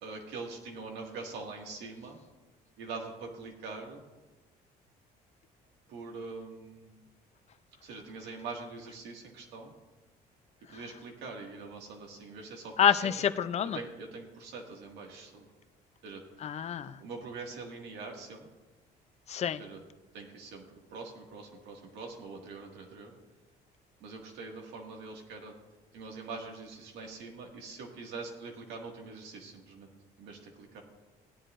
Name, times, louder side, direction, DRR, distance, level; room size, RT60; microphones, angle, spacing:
voice 1, 0.0-2.2 2.8-4.0 5.9-7.0 7.8-9.7 10.7-13.3 13.7-15.5 16.0-16.2 17.0-18.5 19.6-19.8 20.1-23.1 24.0-25.5 25.9-29.9 30.2-30.8, right 4 dB, 90° right, 1 dB, 2.0 m, -43 dB
voice 2, 12.8-13.8 16.4-17.0 19.3-19.6, left 9 dB, 40° left, 13 dB, 0.5 m, -27 dB
16.5 x 10.0 x 2.5 m, 1.2 s
cardioid pair, 110°, 17 cm